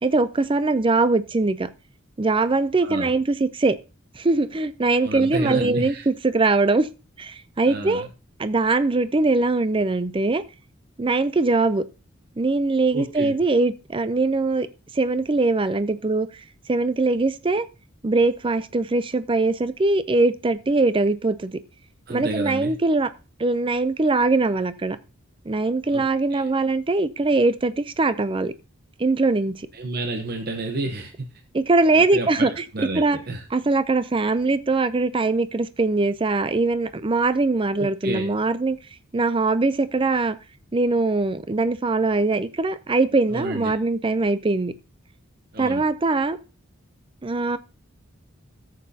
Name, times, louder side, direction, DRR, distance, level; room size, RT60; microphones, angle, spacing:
voice 1, 0.0-1.7 2.2-3.8 4.1-6.9 7.2-8.1 8.4-10.4 11.0-11.8 12.4-14.7 14.9-16.3 16.7-17.7 18.0-21.6 22.1-23.1 23.4-25.0 25.5-28.5 29.0-29.7 31.5-32.6 32.9-33.2 33.5-38.8 39.1-40.4 40.7-44.7 45.6-46.4 47.2-47.6, right 3 dB, 25° right, 0.5 m, -22 dB
voice 2, 5.0-6.1 7.7-8.1 12.9-13.4 22.1-22.7 25.9-26.5 29.7-31.3 31.9-33.4 37.7-38.3 43.3-43.8 45.5-45.8, right 2 dB, 50° right, 0.9 m, -30 dB
14.0 x 7.5 x 2.8 m
head